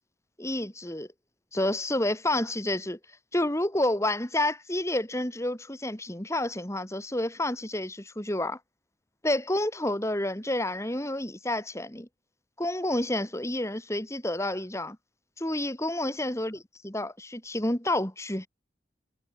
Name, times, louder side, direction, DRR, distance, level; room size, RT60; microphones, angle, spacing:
voice 1, 0.4-1.1 1.5-3.0 3.3-8.6 9.2-12.1 12.6-15.0 15.4-16.6 16.8-18.5, left 1 dB, 15° left, 3.1 m, -29 dB
head